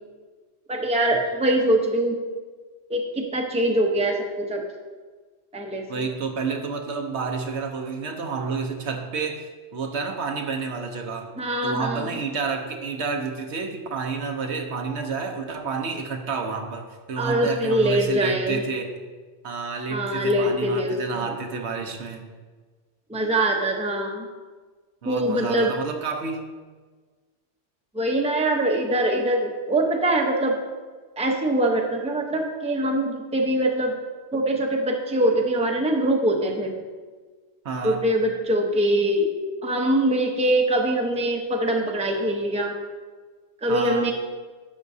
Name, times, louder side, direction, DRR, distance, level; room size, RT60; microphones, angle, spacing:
voice 1, 0.7-2.2 2.9-4.6 5.5-6.0 11.4-12.1 17.2-18.6 19.9-21.3 23.1-24.3 25.0-25.7 27.9-30.6 31.2-33.9 34.3-36.7 37.8-39.3 39.6-42.7 43.6-44.1, right 1 dB, 5° right, 2 dB, 0.7 m, -23 dB
voice 2, 5.9-9.4 9.7-11.3 11.6-18.9 19.4-22.3 25.0-26.4 37.6-38.0 43.7-44.1, right 4 dB, 70° right, 4 dB, 1.1 m, -29 dB
11.5 x 7.4 x 2.7 m, 1.4 s
omnidirectional pair, 1.2 m